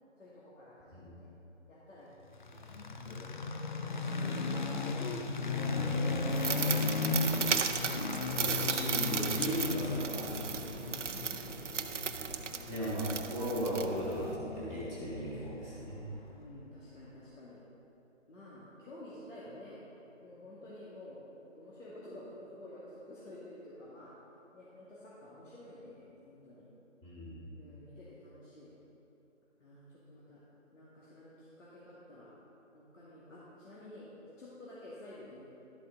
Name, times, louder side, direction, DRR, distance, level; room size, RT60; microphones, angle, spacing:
voice 1, 0.2-1.3 1.7-2.1 2.5-3.9 11.1-11.6 16.3-17.6 18.3-19.8 20.2-21.3 21.5-24.1 24.5-26.7 27.6-28.7 29.6-30.4 30.7-32.3 32.7-34.1 34.4-35.5, left 1 dB, 75° left, -9 dB, 2.5 m, -51 dB
sound 1, 2.3-16.5, left 3 dB, 40° left, 0.5 m, -36 dB
voice 2, 5.6-6.3 8.4-10.9 12.7-16.0 27.0-27.4, equal, 15° left, -10 dB, 2.2 m, -37 dB
sound 2, 6.3-14.4, right 6 dB, 70° right, 0.8 m, -35 dB
12.0 x 8.4 x 4.0 m, 2.9 s
figure-of-eight pair, 155°, 38 cm